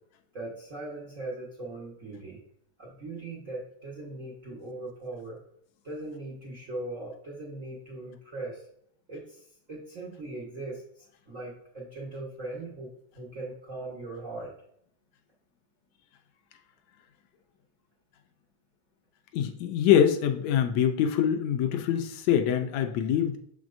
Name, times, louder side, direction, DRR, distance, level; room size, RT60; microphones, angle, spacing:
voice 1, 0.3-2.4 2.8-5.4 5.8-8.6 9.1-12.9 13.1-14.5, right 2 dB, 75° right, -4 dB, 0.7 m, -39 dB
voice 2, 19.3-23.4, left 9 dB, 75° left, 5 dB, 1.8 m, -24 dB
6.5 x 6.1 x 2.6 m, 0.69 s
omnidirectional pair, 3.4 m